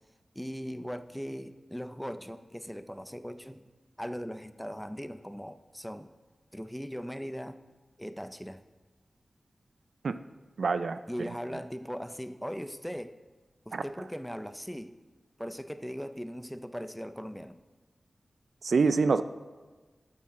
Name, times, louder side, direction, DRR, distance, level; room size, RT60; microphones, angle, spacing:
voice 1, 0.3-3.7 4.0-6.1 6.5-7.6 8.0-8.6 11.1-13.1 13.7-14.9 15.4-17.6, equal, ahead, 11 dB, 0.5 m, -39 dB
voice 2, 10.6-11.6 13.7-14.1 18.6-19.2, right 4 dB, 80° right, 12 dB, 0.4 m, -27 dB
12.0 x 8.3 x 3.7 m, 1.3 s
wide cardioid pair, 75°, 0 cm